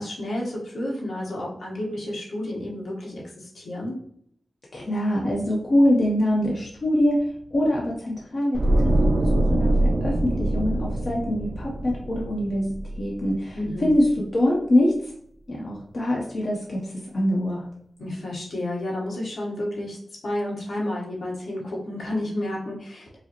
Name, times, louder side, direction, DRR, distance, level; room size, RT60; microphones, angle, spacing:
voice 1, 0.0-4.0 13.5-13.9 18.0-20.0 20.2-23.2, left 1 dB, 75° left, -4 dB, 1.2 m, -31 dB
voice 2, 4.7-7.2 7.5-9.7 10.0-15.1 15.5-16.8 17.1-17.7, left 1 dB, 45° left, -4 dB, 0.8 m, -24 dB
sound 1, 8.5-13.6 13.9-14.2, right 1 dB, 45° right, 0.4 m, -24 dB
4.8 x 2.1 x 2.9 m, 0.66 s
wide cardioid pair, 115°, 0 cm